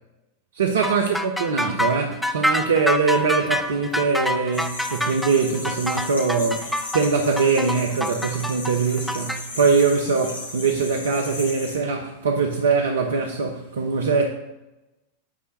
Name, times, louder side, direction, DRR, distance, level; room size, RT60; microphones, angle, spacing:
voice 1, 0.5-14.3, right 4 dB, 65° right, 0.7 m, -22 dB
sound 1, 0.8-9.4, left 1 dB, ahead, 0.6 m, -26 dB
sound 2, 4.5-11.8, left 2 dB, 65° left, 3.3 m, -36 dB
9.9 x 3.3 x 6.5 m
figure-of-eight pair, 90°, 0 cm